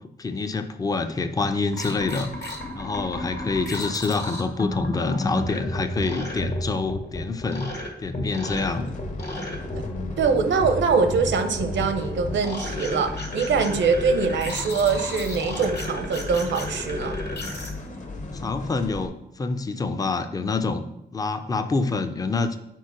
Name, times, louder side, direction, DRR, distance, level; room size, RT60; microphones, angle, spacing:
voice 1, 0.2-7.7 8.0-8.9 9.8-10.1 13.7-14.0 18.4-20.9 21.1-22.6, left 3 dB, 20° left, 8 dB, 0.4 m, -27 dB
sound 1, 1.7-17.7, left 1 dB, 65° left, 1.7 m, -33 dB
sound 2, 8.4-19.1, left 2 dB, 40° left, 1.0 m, -36 dB
voice 2, 10.2-17.2, right 5 dB, 80° right, 9 dB, 0.7 m, -23 dB
4.6 x 4.5 x 5.8 m, 0.81 s
wide cardioid pair, 120°, 19 cm